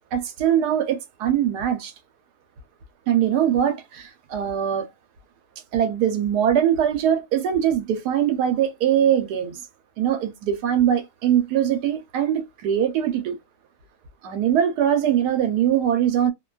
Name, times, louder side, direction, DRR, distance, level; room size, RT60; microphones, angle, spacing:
voice 1, 0.1-1.9 3.1-4.9 5.7-9.6 10.0-13.4 14.2-16.3, right 9 dB, 90° right, 1.2 m, -22 dB
2.8 x 2.2 x 2.3 m
omnidirectional pair, 1.6 m